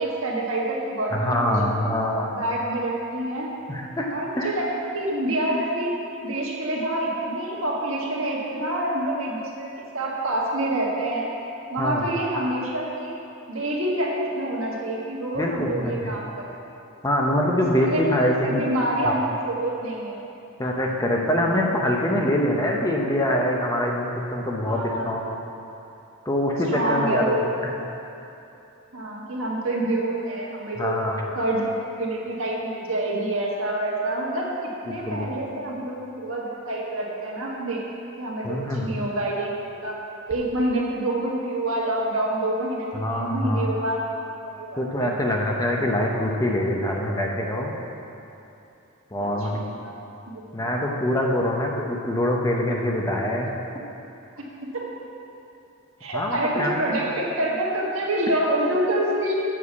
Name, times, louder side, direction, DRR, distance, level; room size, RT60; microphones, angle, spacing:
voice 1, 0.0-1.8 2.3-3.5 4.1-4.7 4.9-5.9 6.2-9.7 9.9-11.3 11.7-13.1 13.5-16.6 17.5-18.2 18.4-20.2 24.7-25.1 26.7-27.6 28.9-31.0 31.3-31.7 32.0-37.8 38.2-40.0 40.3-44.0 44.5-45.1 45.7-45.8 49.2-50.0 50.3-50.7 54.6-54.8 56.0-59.4, right 1 dB, 70° right, -3 dB, 1.6 m, -27 dB
voice 2, 1.1-2.3 3.7-4.1 4.4-4.5 11.8-12.1 15.4-16.1 17.0-18.6 19.0-19.1 20.6-25.3 26.3-27.4 30.8-31.2 34.9-35.3 38.4-38.9 42.9-43.7 44.8-47.7 49.1-49.6 50.5-53.5 56.1-57.0, left 1 dB, 15° left, -1 dB, 0.7 m, -24 dB
7.5 x 6.4 x 7.0 m, 2.8 s
head